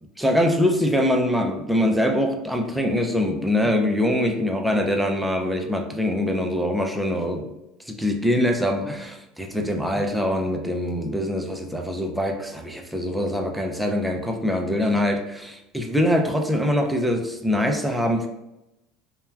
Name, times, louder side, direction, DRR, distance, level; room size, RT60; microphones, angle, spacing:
voice 1, 0.2-7.5 7.9-18.3, left 1 dB, 5° right, 3 dB, 0.4 m, -23 dB
3.1 x 2.2 x 2.3 m, 0.90 s
supercardioid pair, 110°, 0 cm